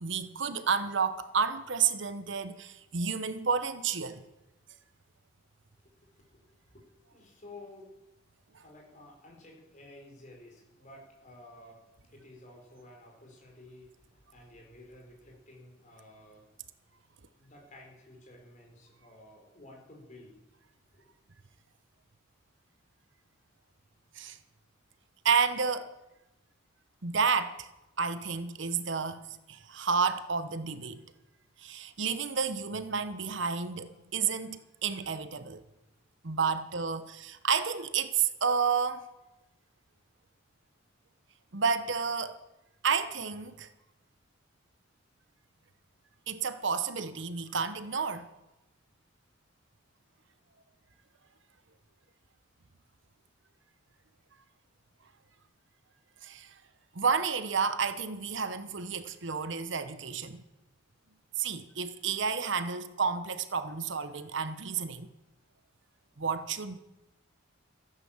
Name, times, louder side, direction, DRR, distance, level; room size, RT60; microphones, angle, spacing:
voice 1, 0.0-4.2 24.2-24.4 25.2-25.9 27.0-27.7 28.0-29.2 29.5-31.0 31.6-35.6 36.2-39.0 41.5-42.4 42.8-43.7 46.3-48.3 56.2-56.5 56.9-60.4 61.4-65.1 66.2-66.8, right 6 dB, 60° right, 0.9 m, -30 dB
voice 2, 5.8-6.9 7.1-7.9 8.6-16.5 17.3-20.3 21.0-21.1, left 1 dB, 35° left, 4.4 m, -53 dB
14.5 x 10.5 x 7.3 m
head